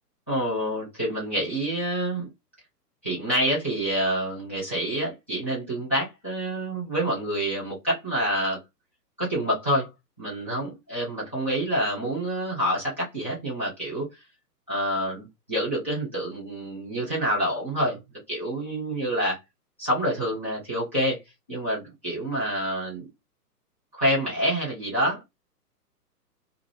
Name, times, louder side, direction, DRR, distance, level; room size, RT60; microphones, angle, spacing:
voice 1, 0.3-2.3 3.0-8.6 9.2-9.9 10.2-14.1 14.7-18.0 18.3-19.4 19.8-21.2 21.5-23.1 23.9-25.2, equal, 10° left, 0.4 m, -27 dB
2.3 x 2.3 x 3.3 m
figure-of-eight pair, 125°, 48 cm